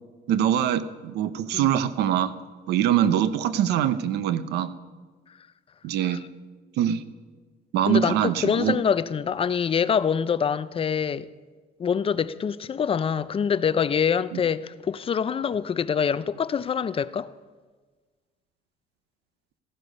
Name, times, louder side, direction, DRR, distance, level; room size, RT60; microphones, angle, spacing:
voice 1, 0.3-2.3 2.7-4.7 5.8-6.2 6.8-7.0 7.7-8.8 14.3-14.4, right 10 dB, 80° right, 0.9 m, -23 dB
voice 2, 7.9-11.3 11.8-17.3, left 7 dB, 35° left, 0.5 m, -25 dB
15.5 x 14.5 x 5.4 m
cardioid pair, 110°, 17 cm